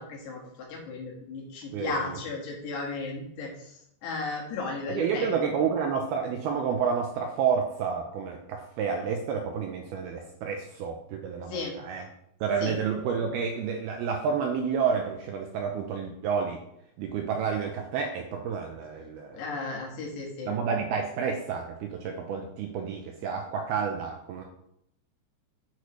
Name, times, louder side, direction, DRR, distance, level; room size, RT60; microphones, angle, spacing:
voice 1, 0.0-5.5 11.5-11.8 12.6-12.7 19.3-20.5, left 3 dB, 70° left, -2 dB, 3.9 m, -35 dB
voice 2, 1.7-2.2 4.9-12.1 12.4-16.6 17.0-19.4 20.5-24.4, right 6 dB, 80° right, 2 dB, 2.3 m, -30 dB
8.4 x 8.2 x 3.2 m, 0.76 s
omnidirectional pair, 5.2 m